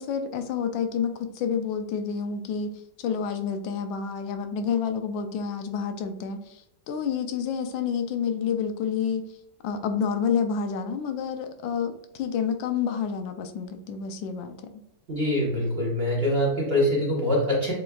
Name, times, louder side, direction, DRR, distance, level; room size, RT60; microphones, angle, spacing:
voice 1, 0.0-2.7 3.0-9.3 9.6-14.7, left 7 dB, 90° left, 7 dB, 1.3 m, -29 dB
voice 2, 15.1-17.7, left 1 dB, 35° right, -4 dB, 1.3 m, -24 dB
6.6 x 3.0 x 2.3 m, 0.82 s
omnidirectional pair, 2.0 m